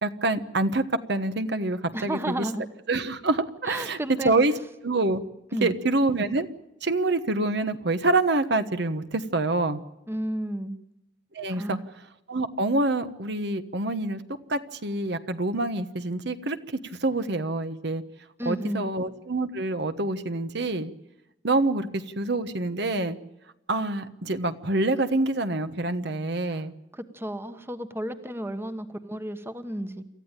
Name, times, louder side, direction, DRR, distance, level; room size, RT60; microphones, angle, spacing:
voice 1, 0.0-2.5 2.9-4.0 4.2-4.5 4.8-5.2 5.6-6.5 6.8-9.8 11.3-11.8 12.3-14.2 14.5-18.0 18.4-20.9 21.4-23.2 23.7-26.7, right 2 dB, 60° right, 10 dB, 1.2 m, -26 dB
voice 2, 1.9-2.6 3.6-4.3 5.5-5.8 10.1-10.8 11.5-11.9 18.4-19.0 26.5-26.6 26.9-30.0, right 1 dB, 15° right, 9 dB, 1.2 m, -32 dB
28.0 x 14.0 x 9.0 m, 0.92 s
head